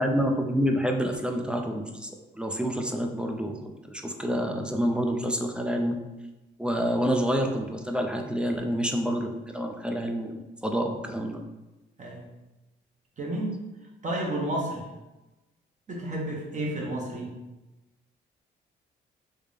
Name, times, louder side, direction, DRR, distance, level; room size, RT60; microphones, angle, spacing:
voice 1, 0.0-6.0 6.6-11.4, equal, 5° right, 3 dB, 0.4 m, -28 dB
voice 2, 13.2-13.6 14.0-14.8 15.9-17.3, right 1 dB, 40° right, -1 dB, 1.0 m, -31 dB
3.4 x 2.7 x 3.4 m, 1.0 s
cardioid pair, 90°, 20 cm